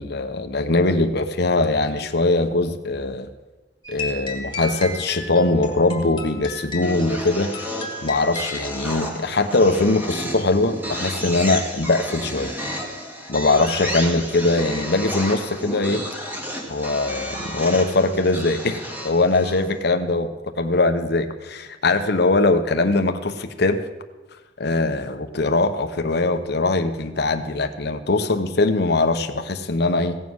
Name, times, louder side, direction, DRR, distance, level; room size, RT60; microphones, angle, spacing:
voice 1, 0.0-3.3 3.9-7.5 8.0-12.5 13.3-16.0 16.7-23.8 24.6-30.2, left 2 dB, 60° left, 8 dB, 1.0 m, -21 dB
sound 1, 3.8-9.1, left 1 dB, 25° left, 1.8 m, -33 dB
sound 2, 4.5-5.3 6.8-19.8, equal, 10° right, 1.8 m, -32 dB
16.5 x 7.4 x 6.3 m, 1.1 s
head